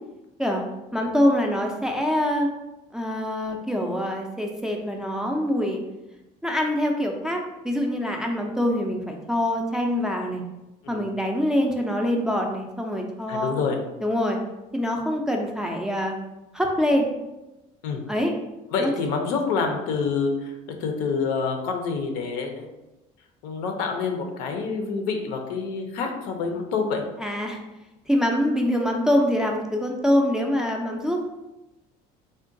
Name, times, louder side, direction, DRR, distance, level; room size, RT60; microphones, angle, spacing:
voice 1, 0.9-2.5 2.9-5.8 6.4-10.4 10.9-13.5 14.0-14.4 14.7-16.1 16.5-17.1 18.1-18.3 18.8-18.9 27.2-27.6 28.1-31.3, left 1 dB, 5° right, 0 dB, 0.3 m, -24 dB
voice 2, 13.3-13.8 17.8-18.0 18.7-22.7 23.4-27.0, left 5 dB, 90° left, 3 dB, 0.5 m, -27 dB
3.6 x 2.2 x 2.5 m, 0.99 s
cardioid pair, 125°, 16 cm